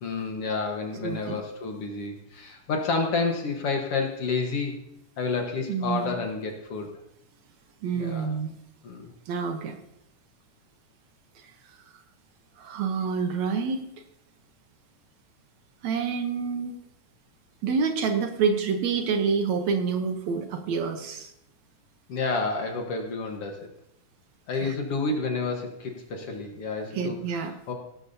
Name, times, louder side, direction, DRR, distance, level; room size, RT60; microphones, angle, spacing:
voice 1, 0.0-4.8 5.2-6.9 7.9-8.3 8.8-9.1 22.1-23.7 24.5-27.7, left 4 dB, 55° left, 2 dB, 2.0 m, -30 dB
voice 2, 1.0-1.4 5.7-6.2 7.8-8.5 9.3-9.8 12.6-13.9 15.8-16.7 17.6-21.3 24.6-24.7 26.9-27.5, right 5 dB, 70° right, 7 dB, 2.1 m, -27 dB
17.5 x 12.0 x 2.8 m, 0.82 s
omnidirectional pair, 3.6 m